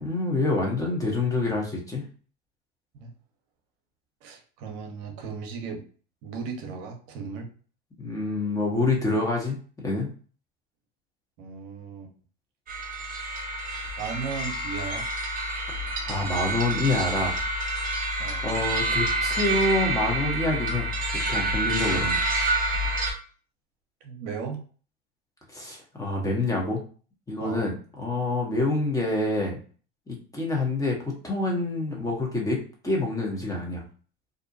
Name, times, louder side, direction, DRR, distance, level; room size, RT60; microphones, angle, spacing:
voice 1, 0.0-2.0 8.0-10.1 15.7-15.8 16.1-17.4 18.4-20.9 21.3-22.2 25.5-26.8 27.3-29.6 30.1-32.6 32.8-33.8, left 2 dB, 10° left, -1 dB, 0.8 m, -27 dB
voice 2, 4.2-5.8 6.2-7.5 11.4-12.1 14.0-15.1 18.2-18.5 24.0-24.6 27.4-27.6, right 5 dB, 60° right, 3 dB, 0.8 m, -36 dB
sound 1, 12.7-23.1, right 2 dB, 30° right, 0.7 m, -28 dB
2.5 x 2.1 x 2.6 m, 0.41 s
hypercardioid pair, 90°, 30 cm